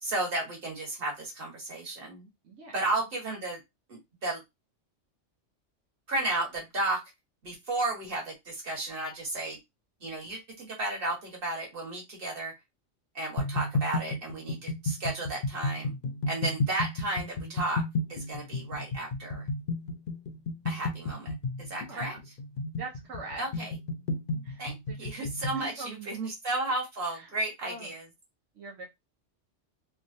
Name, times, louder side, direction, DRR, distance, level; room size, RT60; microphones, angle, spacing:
voice 1, 0.0-2.3 2.7-3.6 3.9-4.4 6.1-7.0 7.4-9.6 10.0-12.5 13.1-15.9 16.3-17.8 18.1-19.5 20.6-21.3 21.7-22.1 23.4-23.7 24.6-28.0, right 2 dB, 50° right, -1 dB, 1.6 m, -33 dB
voice 2, 2.4-2.9 21.8-22.2 22.8-23.7 24.4-25.1 25.5-26.3 27.1-27.3 27.6-27.9 28.6-28.9, right 3 dB, 85° right, 0 dB, 1.1 m, -43 dB
sound 1, 13.4-25.6, left 2 dB, 55° left, 0.7 m, -32 dB
3.3 x 2.3 x 2.6 m, 0.19 s
omnidirectional pair, 1.2 m